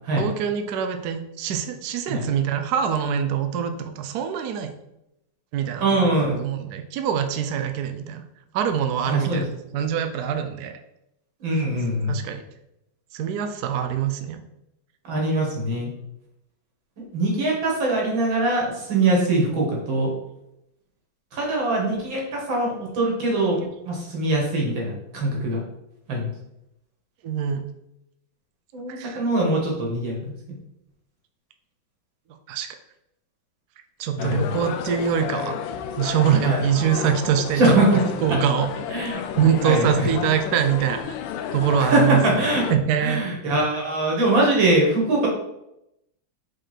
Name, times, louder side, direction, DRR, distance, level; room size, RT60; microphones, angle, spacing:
voice 1, 0.2-4.7 5.5-8.2 8.5-9.5 9.7-10.7 11.7-11.8 12.1-12.4 13.1-14.4 27.2-27.6 28.9-29.2 32.5-32.7 34.0-35.6 36.0-37.8 38.2-38.7 39.3-41.1 41.5-43.2, right 8 dB, 70° right, 7 dB, 1.0 m, -24 dB
voice 2, 5.8-6.4 9.1-9.4 11.4-12.1 15.1-15.9 17.1-20.1 21.3-25.6 26.1-26.3 28.7-30.1 34.2-34.4 36.4-36.6 37.6-37.9 38.9-39.2 39.6-39.9 41.9-42.6 43.0-45.3, right 2 dB, 90° right, -2 dB, 2.6 m, -22 dB
sound 1, 34.2-42.8, left 8 dB, 85° left, 1.3 m, -31 dB
5.2 x 4.4 x 4.3 m, 0.83 s
omnidirectional pair, 2.0 m